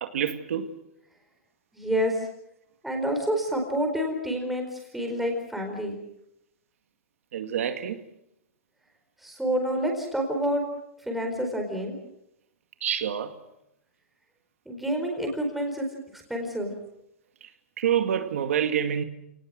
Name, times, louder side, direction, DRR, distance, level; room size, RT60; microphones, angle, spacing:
voice 1, 0.0-0.7 7.3-8.0 12.8-13.4 17.4-17.5 17.8-19.0, right 9 dB, 80° right, 2.2 m, -27 dB
voice 2, 1.7-2.2 2.8-4.6 4.9-6.0 9.2-10.6 11.1-12.0 14.7-15.9 16.1-16.7, equal, ahead, 4.5 m, -28 dB
29.0 x 19.0 x 7.6 m
supercardioid pair, 165°, 7 cm